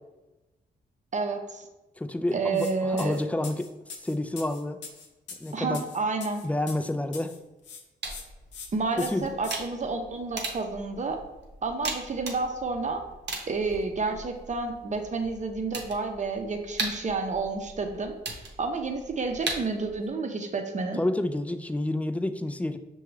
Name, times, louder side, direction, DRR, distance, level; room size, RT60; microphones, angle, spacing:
voice 1, 1.1-1.7 2.3-3.2 5.5-6.4 8.7-11.2 11.6-13.0 13.5-18.2 18.6-21.0, right 3 dB, 40° right, 5 dB, 0.7 m, -30 dB
voice 2, 2.0-3.7 4.0-4.8 5.4-5.8 6.4-7.3 9.0-9.3 21.0-22.8, left 1 dB, 10° left, 10 dB, 0.3 m, -29 dB
sound 1, 2.5-2.7 3.0-7.4 7.6-8.2 8.5-8.7 9.0-9.6, left 6 dB, 80° left, 0.6 m, -42 dB
sound 2, 8.0-20.1, right 3 dB, 70° right, 0.8 m, -39 dB
5.8 x 2.3 x 3.2 m, 1.0 s
cardioid pair, 60°, 19 cm